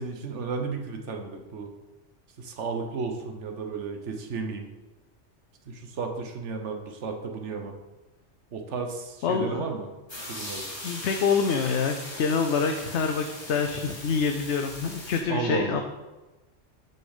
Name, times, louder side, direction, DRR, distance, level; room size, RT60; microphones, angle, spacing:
voice 1, 0.0-1.7 2.4-4.6 5.7-7.8 8.5-9.9 10.3-10.7 15.3-15.8, right 4 dB, 70° right, 4 dB, 1.2 m, -33 dB
voice 2, 9.2-9.7 10.8-15.8, left 5 dB, 70° left, 5 dB, 0.9 m, -26 dB
sound 1, 10.1-15.2, left 1 dB, 20° left, 1.4 m, -39 dB
6.8 x 5.9 x 4.9 m, 1.1 s
omnidirectional pair, 1.3 m